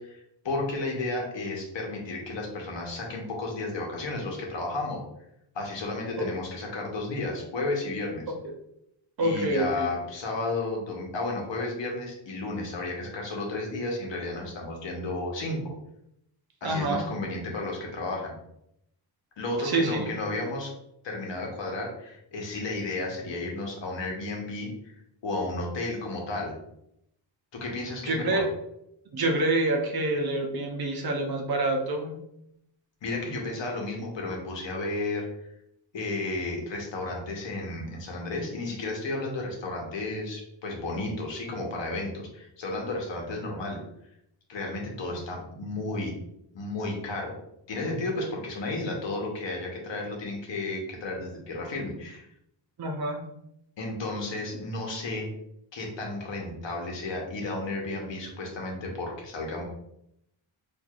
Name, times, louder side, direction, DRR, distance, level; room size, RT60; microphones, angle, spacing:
voice 1, 0.0-5.0 5.5-8.2 9.2-15.6 16.6-18.3 19.4-20.7 21.0-24.9 25.2-26.5 27.5-28.5 33.0-35.3 35.9-43.8 44.5-46.2 46.5-47.4 47.7-52.3 53.8-55.3 55.7-59.6, left 2 dB, 70° left, 0 dB, 1.0 m, -33 dB
voice 2, 9.2-9.9 16.6-17.0 19.6-20.1 28.1-28.5 29.1-32.2 45.0-45.2 52.8-53.2, right 2 dB, 50° right, 3 dB, 0.7 m, -27 dB
4.5 x 2.6 x 2.4 m, 0.79 s
wide cardioid pair, 110°, 47 cm